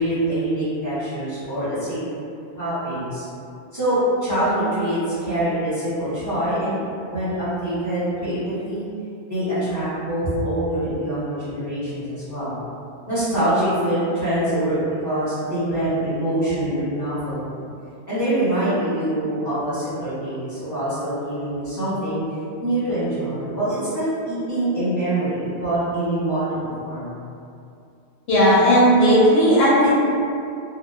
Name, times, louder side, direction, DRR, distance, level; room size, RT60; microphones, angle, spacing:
voice 1, 0.0-2.0 2.6-3.3 3.7-6.8 7.1-8.9 9.3-12.6 13.1-17.6 18.1-27.2, right 1 dB, 15° right, -14 dB, 0.8 m, -24 dB
voice 2, 28.3-29.9, equal, 70° left, -7 dB, 0.8 m, -15 dB
2.7 x 2.0 x 2.3 m, 2.6 s
omnidirectional pair, 1.1 m